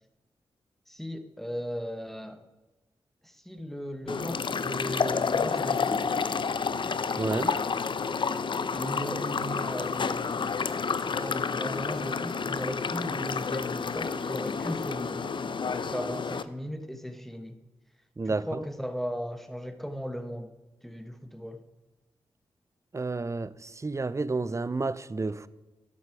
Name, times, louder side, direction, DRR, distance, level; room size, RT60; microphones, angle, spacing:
voice 1, 0.9-2.4 3.2-6.1 8.7-10.6 10.9-17.6 18.2-20.5 20.8-21.6, equal, 5° left, 1.1 m, -37 dB
sound 1, 4.1-16.4, left 5 dB, 55° left, 0.6 m, -30 dB
voice 2, 7.2-7.5 18.2-18.6 22.9-25.5, right 3 dB, 30° right, 0.6 m, -30 dB
11.0 x 8.0 x 4.8 m
cardioid pair, 50°, 10 cm